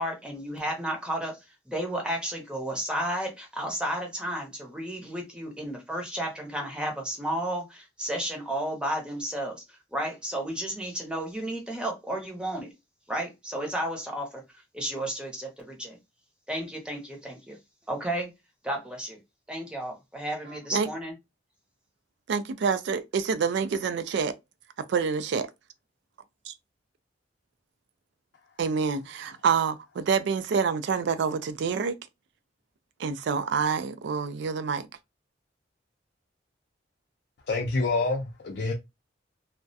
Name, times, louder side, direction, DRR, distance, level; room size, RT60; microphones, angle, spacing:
voice 1, 0.0-9.6 9.9-12.7 13.1-14.4 14.7-16.0 16.5-17.6 17.9-18.3 18.6-19.2 19.5-21.1, right 1 dB, 5° right, 0.7 m, -32 dB
voice 2, 22.3-24.3 24.9-25.5 26.5-26.6 28.6-32.0 33.0-34.9, right 6 dB, 65° right, 0.3 m, -27 dB
voice 3, 37.5-38.7, left 3 dB, 65° left, 0.5 m, -27 dB
2.3 x 2.1 x 2.6 m
head